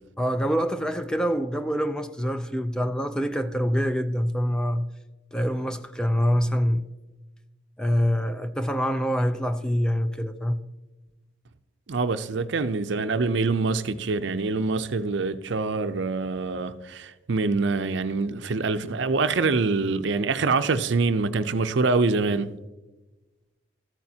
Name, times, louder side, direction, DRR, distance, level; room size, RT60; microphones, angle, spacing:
voice 1, 0.2-4.9 5.3-6.8 7.8-10.6, equal, 5° left, 0.4 m, -25 dB
voice 2, 11.9-22.5, right 3 dB, 60° right, 0.5 m, -25 dB
14.0 x 8.8 x 2.8 m
head